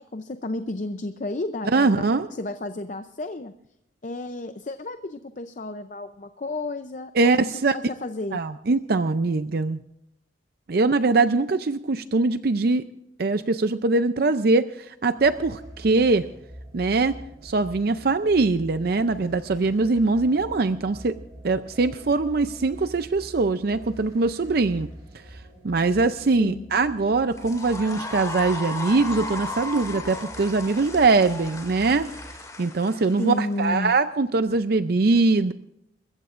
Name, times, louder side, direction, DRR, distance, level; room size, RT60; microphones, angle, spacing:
voice 1, 0.0-3.5 4.0-8.4 26.4-26.7 33.2-33.9, left 2 dB, 40° left, 9 dB, 0.6 m, -32 dB
voice 2, 1.7-2.3 7.2-7.8 8.3-9.8 10.7-12.8 13.2-16.3 16.7-17.2 17.4-21.2 21.4-24.9 25.3-32.1 32.6-35.5, right 3 dB, 55° right, 11 dB, 0.5 m, -22 dB
sound 1, 15.2-32.3, right 1 dB, 20° right, 6.6 m, -45 dB
sound 2, 27.3-33.6, left 3 dB, 20° left, 2.4 m, -35 dB
29.0 x 15.0 x 2.5 m, 0.82 s
head